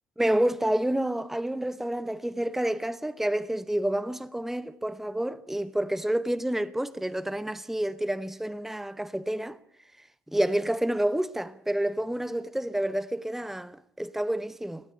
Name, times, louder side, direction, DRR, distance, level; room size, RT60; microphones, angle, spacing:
voice 1, 0.2-9.6 10.3-14.8, right 1 dB, 5° right, 0.9 m, -29 dB
19.5 x 17.0 x 9.9 m
figure-of-eight pair, 55°, 9 cm